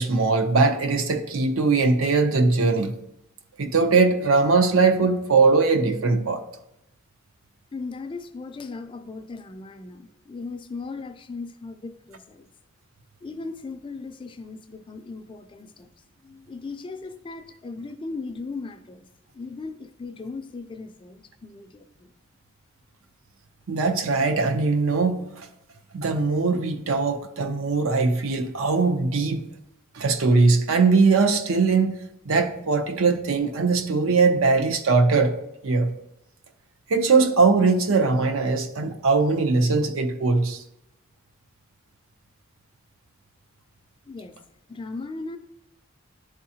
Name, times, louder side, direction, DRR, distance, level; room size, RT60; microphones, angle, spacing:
voice 1, 0.0-3.0 3.6-6.4 23.7-25.5 25.9-29.5 29.9-32.0 32.3-35.4 35.6-35.9 36.9-40.6, right 4 dB, 80° right, 0.6 m, -21 dB
voice 2, 7.7-12.5 13.2-15.9 16.2-19.1 19.3-22.1 44.1-44.4 44.7-45.4, left 3 dB, 25° left, 0.3 m, -37 dB
10.5 x 3.7 x 2.8 m
head